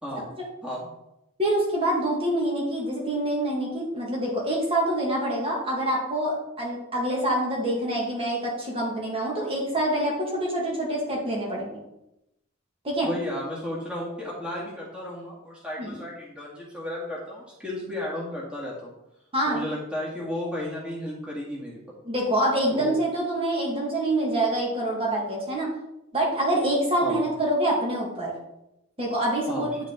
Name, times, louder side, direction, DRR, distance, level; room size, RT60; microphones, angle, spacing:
voice 1, 0.0-0.3 0.6-0.9 13.0-18.9 19.5-21.8 22.7-22.9 27.0-27.2 29.5-29.8, left 1 dB, 5° right, -5 dB, 1.9 m, -33 dB
voice 2, 1.4-11.8 12.8-13.1 15.8-16.0 19.3-19.6 22.0-25.7 26.1-28.3 29.0-29.7, right 1 dB, 25° right, -3 dB, 1.9 m, -26 dB
9.6 x 5.2 x 3.8 m, 0.86 s
head